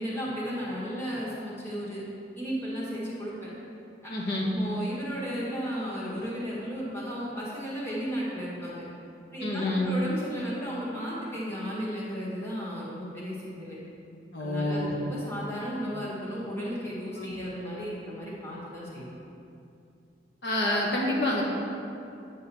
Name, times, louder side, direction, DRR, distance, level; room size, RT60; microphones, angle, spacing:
voice 1, 0.0-2.0 2.4-3.5 4.0-4.1 4.5-8.9 9.3-13.8 14.4-19.1, equal, 15° left, -7 dB, 1.7 m, -34 dB
voice 2, 4.1-4.5 9.4-9.9 14.3-14.9 17.2-17.3 20.4-21.4, left 1 dB, 70° left, -3 dB, 1.3 m, -28 dB
9.4 x 3.8 x 7.0 m, 2.7 s
head